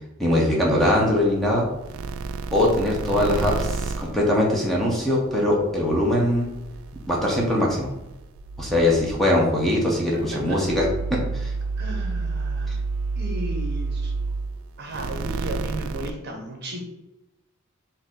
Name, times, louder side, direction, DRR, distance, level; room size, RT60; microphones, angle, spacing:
voice 1, 0.2-1.7 2.5-6.5 7.1-7.9 8.6-11.5, left 1 dB, ahead, -4 dB, 0.8 m, -22 dB
sound 1, 0.7-5.1 5.4-16.1, right 4 dB, 80° right, 0.4 m, -31 dB
voice 2, 10.1-10.6 11.8-12.8 13.2-14.1 14.8-16.8, right 1 dB, 50° right, 1 dB, 0.9 m, -35 dB
4.6 x 2.6 x 3.8 m, 0.95 s
head